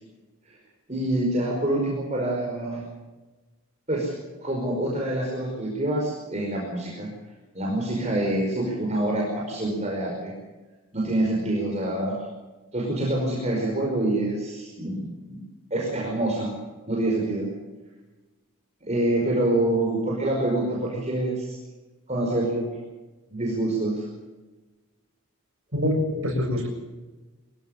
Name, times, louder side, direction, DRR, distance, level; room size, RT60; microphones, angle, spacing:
voice 1, 0.9-2.8 3.9-4.1 4.4-7.1 7.5-10.3 10.9-12.2 12.7-15.0 15.7-16.5 16.8-17.5 18.8-21.6 22.1-22.7 23.3-24.0, right 1 dB, 30° right, -2 dB, 5.1 m, -26 dB
voice 2, 25.7-26.7, left 1 dB, 65° right, 2 dB, 6.8 m, -25 dB
24.0 x 16.5 x 7.2 m, 1.2 s
head